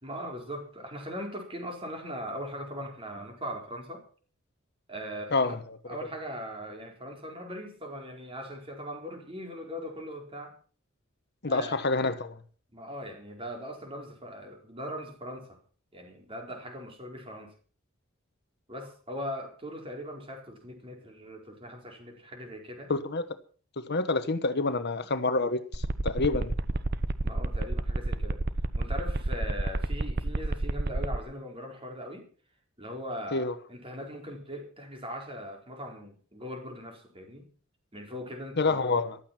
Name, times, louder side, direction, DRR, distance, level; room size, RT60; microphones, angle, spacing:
voice 1, 0.0-4.0 4.9-5.5 5.9-10.5 11.5-11.8 12.7-15.6 15.9-17.5 18.7-22.9 27.2-28.4 28.8-32.2 32.8-37.5 37.9-38.8, equal, 25° right, 4.2 m, -40 dB
voice 2, 11.4-12.4 22.9-23.3 23.8-26.5 33.3-33.5 38.6-39.2, left 3 dB, 55° left, 1.1 m, -27 dB
sound 1, 25.7-31.2, right 2 dB, 50° right, 1.0 m, -29 dB
15.0 x 12.5 x 5.9 m
head